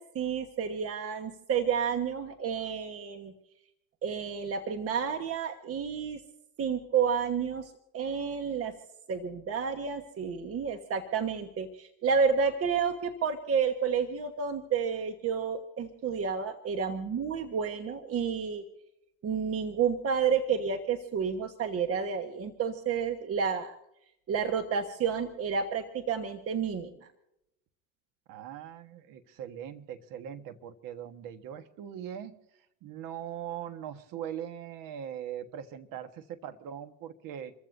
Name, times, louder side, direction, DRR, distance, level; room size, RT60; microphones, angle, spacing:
voice 1, 0.0-3.3 4.0-6.2 6.6-8.7 9.1-18.6 19.2-23.8 24.3-26.9, right 6 dB, 35° right, 7 dB, 1.3 m, -30 dB
voice 2, 28.3-32.3 32.8-37.5, right 9 dB, 50° right, 9 dB, 1.5 m, -41 dB
28.0 x 15.0 x 2.7 m, 0.84 s
hypercardioid pair, 95°, 41 cm